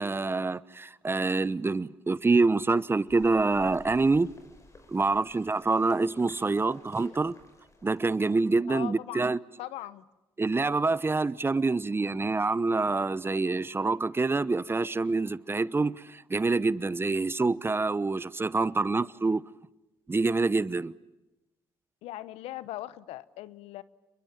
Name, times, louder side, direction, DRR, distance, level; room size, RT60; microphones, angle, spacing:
voice 1, 0.0-4.3 4.9-7.3 7.8-9.4 10.4-19.4 20.1-20.9, right 3 dB, 20° right, 0.9 m, -26 dB
sound 1, 3.1-8.4, left 2 dB, 30° left, 5.9 m, -54 dB
voice 2, 8.7-9.3 9.6-10.0 22.0-23.8, left 15 dB, 75° left, 1.0 m, -39 dB
29.5 x 22.5 x 9.0 m
hypercardioid pair, 60°, 10 cm